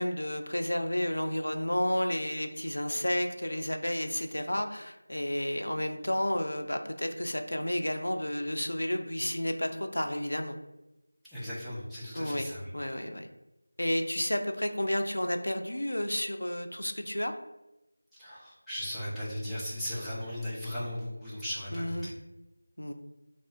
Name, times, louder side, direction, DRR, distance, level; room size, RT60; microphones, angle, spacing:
voice 1, 0.0-10.6 12.1-12.5 12.7-13.3 13.8-17.3 21.7-22.1 22.8-22.9, left 1 dB, 80° left, 6 dB, 0.4 m, -31 dB
voice 2, 11.3-12.6 18.2-22.1, equal, ahead, -14 dB, 0.3 m, -37 dB
3.4 x 2.4 x 2.2 m, 0.94 s
figure-of-eight pair, 175°, 0 cm